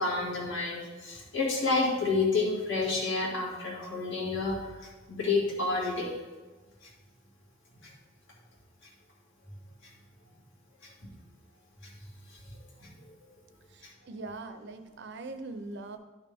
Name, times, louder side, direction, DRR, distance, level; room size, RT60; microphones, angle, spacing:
voice 1, 0.0-6.1 12.8-12.9, left 3 dB, 60° left, -3 dB, 2.2 m, -29 dB
voice 2, 13.7-16.0, right 3 dB, 55° right, 8 dB, 0.6 m, -41 dB
11.0 x 6.1 x 3.5 m, 1.3 s
head